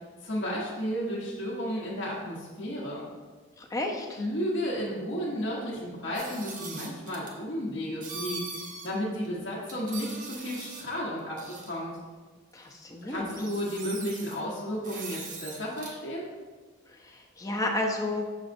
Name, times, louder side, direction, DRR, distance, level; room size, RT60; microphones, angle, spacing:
voice 1, 0.2-3.0 4.2-11.9 13.0-16.3, equal, 70° left, -5 dB, 1.0 m, -33 dB
voice 2, 3.6-4.2 12.5-13.4 16.9-18.2, left 2 dB, 15° left, 2 dB, 0.6 m, -32 dB
sound 1, 6.1-7.4 8.0-8.9 9.2-9.3 9.7-10.9 11.4-11.7 12.7-12.8 13.1-14.4 14.8-16.0, right 4 dB, 40° right, 0.8 m, -41 dB
6.3 x 6.2 x 2.6 m, 1.4 s
head